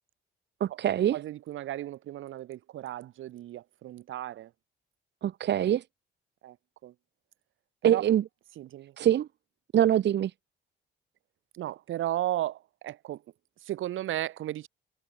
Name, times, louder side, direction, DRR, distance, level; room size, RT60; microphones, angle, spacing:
voice 1, 0.6-1.2 5.2-5.8 7.8-8.2 9.0-9.3 9.7-10.3, right 11 dB, 60° right, 1.1 m, -24 dB
voice 2, 1.1-4.5 6.4-6.6 6.8-6.9 7.8-8.0 8.6-8.9 11.5-13.2 13.6-14.7, right 13 dB, 80° right, 6.9 m, -35 dB
cardioid pair, 90°, 20 cm